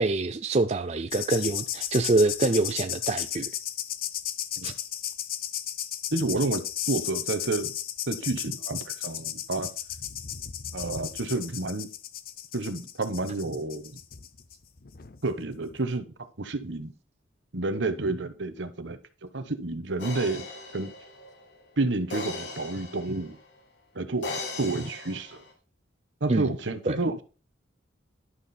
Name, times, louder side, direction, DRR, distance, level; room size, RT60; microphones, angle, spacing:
voice 1, 0.0-3.5 4.6-4.7 26.3-26.5 26.9-27.0, right 2 dB, 35° right, 0.5 m, -25 dB
sound 1, 1.1-15.2 15.5-15.8, left 11 dB, 50° left, 0.7 m, -34 dB
voice 2, 6.1-7.7 8.1-9.7 10.7-11.9 12.5-14.0 15.2-16.1 16.4-16.9 17.5-19.0 19.3-20.5 20.7-20.9 21.8-23.4 23.9-24.3 24.6-25.4 26.2-27.2, right 2 dB, 70° right, 1.1 m, -30 dB
sound 2, 20.0-23.5 24.2-25.5, left 3 dB, 65° left, 2.0 m, -38 dB
11.5 x 6.1 x 4.3 m
head